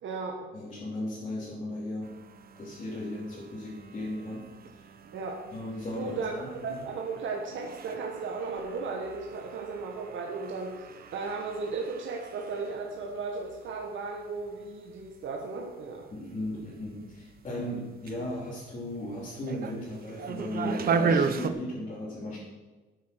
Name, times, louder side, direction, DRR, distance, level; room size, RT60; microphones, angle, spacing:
voice 1, 0.0-0.5 5.1-5.4 5.9-10.8 11.1-16.1, right 4 dB, 70° right, 0 dB, 1.7 m, -35 dB
voice 2, 0.5-2.1 2.6-4.5 4.7-4.9 5.5-6.8 16.1-22.4, left 1 dB, 30° left, -8 dB, 3.4 m, -36 dB
sound 1, 2.0-21.5, right 5 dB, 45° right, 0.8 m, -37 dB
13.5 x 8.7 x 6.2 m, 1.2 s
wide cardioid pair, 180°, 21 cm